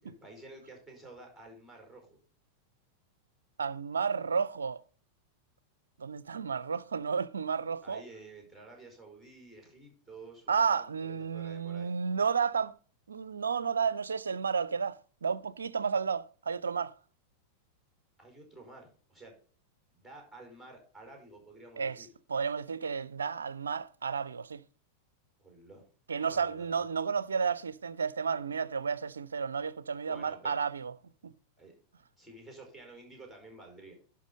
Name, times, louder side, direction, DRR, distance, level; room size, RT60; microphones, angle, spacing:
voice 1, 0.0-2.2 7.8-11.9 18.2-19.3 19.9-22.1 25.4-25.8 26.2-26.8 30.0-30.6 31.6-31.7 32.2-33.9, right 2 dB, 5° left, 4.8 m, -51 dB
voice 2, 3.6-4.8 6.0-8.0 10.5-12.7 13.1-16.9 21.8-24.6 26.1-30.9 31.2-31.3, right 6 dB, 70° right, 0.5 m, -32 dB
11.0 x 5.7 x 5.2 m
figure-of-eight pair, 90°, 0 cm